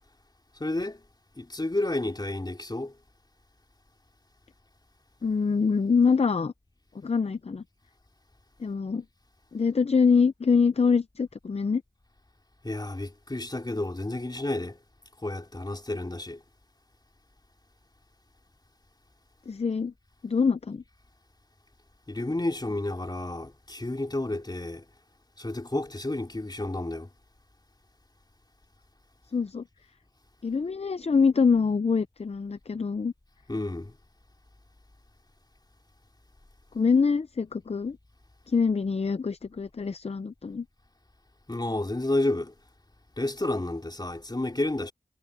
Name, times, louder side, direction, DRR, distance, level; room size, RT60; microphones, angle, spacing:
voice 1, 0.6-1.0 1.4-2.9 12.6-14.8 15.2-16.4 22.1-24.8 25.4-27.1 33.5-33.9 41.5-42.5 43.2-44.9, left 2 dB, 35° left, 4.0 m, -30 dB
voice 2, 5.2-6.5 6.9-7.6 8.6-9.0 9.5-11.8 19.5-19.9 20.2-20.8 29.3-29.6 30.4-33.1 36.7-38.0 38.5-40.7, left 5 dB, 55° left, 0.5 m, -24 dB
wide cardioid pair, 50°, 13 cm